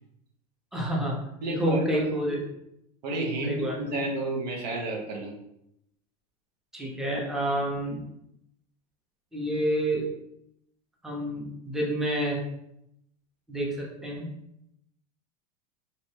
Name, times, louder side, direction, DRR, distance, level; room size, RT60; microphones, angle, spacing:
voice 1, 0.7-1.2 1.5-2.4 3.4-3.9 6.7-8.0 9.3-10.1 11.0-12.4 13.5-14.3, right 1 dB, ahead, -2 dB, 0.6 m, -28 dB
voice 2, 1.4-2.0 3.0-5.3, right 2 dB, 80° right, 0 dB, 0.8 m, -31 dB
2.8 x 2.1 x 3.2 m, 0.79 s
hypercardioid pair, 100°, 21 cm